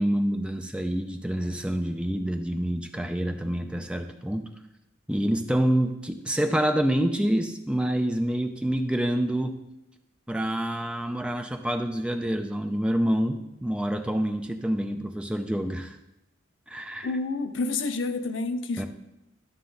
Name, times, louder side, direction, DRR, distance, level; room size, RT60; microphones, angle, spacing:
voice 1, 0.0-4.5 5.1-9.6 10.3-15.9 16.7-17.1 18.8-18.9, right 1 dB, 5° right, 5 dB, 0.5 m, -27 dB
voice 2, 17.0-18.9, left 3 dB, 75° left, 9 dB, 0.7 m, -29 dB
11.5 x 6.7 x 3.9 m, 0.88 s
head